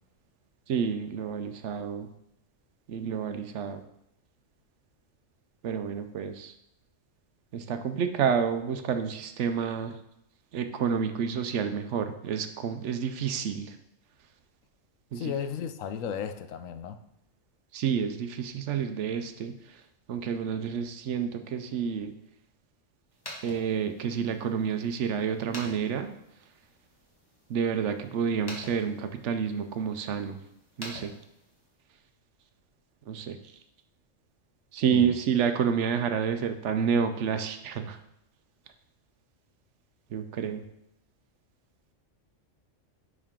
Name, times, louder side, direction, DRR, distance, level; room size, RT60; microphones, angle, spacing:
voice 1, 0.7-2.1 2.9-3.8 5.6-6.5 7.5-9.9 10.5-13.7 15.1-15.3 17.7-19.5 20.1-22.1 23.4-26.1 27.5-30.4 30.8-31.1 33.1-33.4 34.7-38.0 40.1-40.6, right 7 dB, 70° right, 8 dB, 0.9 m, -29 dB
voice 2, 15.1-17.0 34.9-35.2, left 7 dB, 90° left, 10 dB, 1.0 m, -34 dB
sound 1, 23.1-31.8, left 1 dB, 20° left, 1.4 m, -48 dB
10.0 x 3.8 x 3.6 m, 0.78 s
omnidirectional pair, 1.3 m